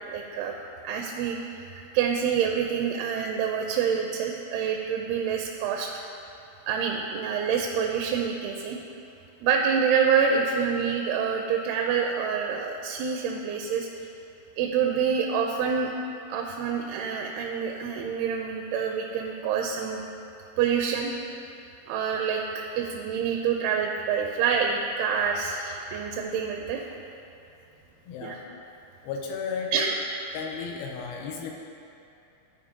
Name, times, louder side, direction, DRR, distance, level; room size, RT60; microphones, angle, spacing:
voice 1, 0.1-0.5 0.8-1.7 1.9-6.0 6.7-8.8 9.4-13.9 14.6-15.9 16.3-20.0 20.6-21.1 21.9-22.4 22.8-26.8 28.2-28.4 29.7-30.0 30.3-30.4, right 7 dB, 80° right, 1 dB, 2.4 m, -27 dB
voice 2, 28.0-28.4 29.0-29.9 30.3-31.6, left 5 dB, 80° left, 1 dB, 2.3 m, -34 dB
13.0 x 4.9 x 3.7 m, 2.7 s
omnidirectional pair, 4.6 m